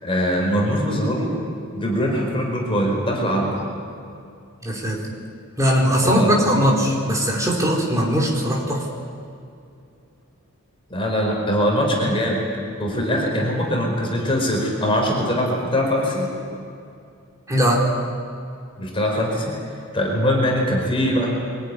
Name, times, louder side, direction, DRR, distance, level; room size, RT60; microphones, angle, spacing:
voice 1, 0.0-1.3 1.7-3.6 6.0-6.6 10.9-12.4 12.8-16.3 18.8-21.3, equal, 25° left, -1 dB, 5.1 m, -22 dB
voice 2, 4.6-5.0 5.6-8.8 17.5-18.0, equal, 15° right, -2 dB, 4.2 m, -20 dB
24.5 x 16.5 x 9.9 m, 2.5 s
head